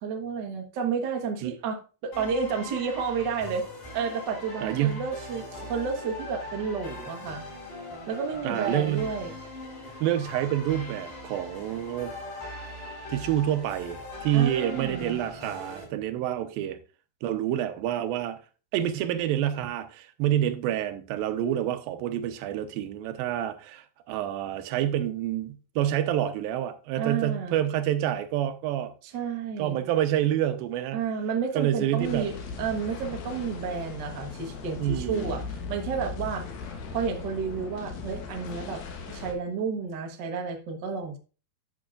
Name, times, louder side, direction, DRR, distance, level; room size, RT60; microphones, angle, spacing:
voice 1, 0.0-3.6 3.9-7.4 8.1-9.3 14.3-15.2 27.0-27.6 29.0-29.8 30.9-35.4 35.7-36.4 36.9-41.2, right 6 dB, 75° right, 1.0 m, -31 dB
sound 1, 2.1-15.8, left 2 dB, 65° left, 6.1 m, -41 dB
voice 2, 4.6-5.1 8.4-9.1 10.0-12.1 13.1-16.8 17.2-18.4 18.7-28.9 29.6-31.0 31.6-32.3 34.8-35.4, right 11 dB, 90° right, 2.6 m, -28 dB
sound 2, 32.0-39.3, left 5 dB, 85° left, 3.1 m, -38 dB
11.0 x 6.7 x 2.4 m
omnidirectional pair, 4.1 m